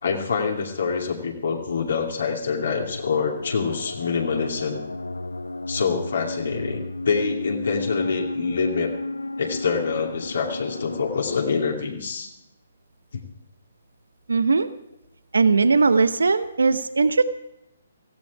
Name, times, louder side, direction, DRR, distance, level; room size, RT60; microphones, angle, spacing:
voice 1, 0.0-4.8 5.7-8.9 9.4-12.3 13.1-13.2, left 5 dB, 65° left, 0 dB, 2.6 m, -26 dB
sound 1, 2.2-11.5, left 2 dB, 85° left, 0.5 m, -33 dB
voice 2, 14.3-14.7 15.3-17.2, right 4 dB, 75° right, 12 dB, 0.9 m, -19 dB
17.0 x 15.5 x 4.8 m, 0.86 s
figure-of-eight pair, 135°, 0 cm